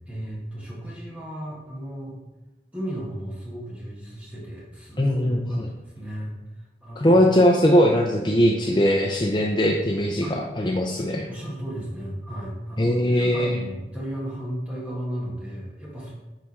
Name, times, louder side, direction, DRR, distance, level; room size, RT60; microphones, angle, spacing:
voice 1, 0.1-2.2 2.7-6.4 6.8-7.2 10.2-10.4 11.3-16.1, equal, 5° right, -5 dB, 1.6 m, -34 dB
voice 2, 5.0-5.7 7.0-11.3 12.8-13.6, equal, 25° left, 0 dB, 0.5 m, -20 dB
9.1 x 3.6 x 4.1 m, 1.1 s
head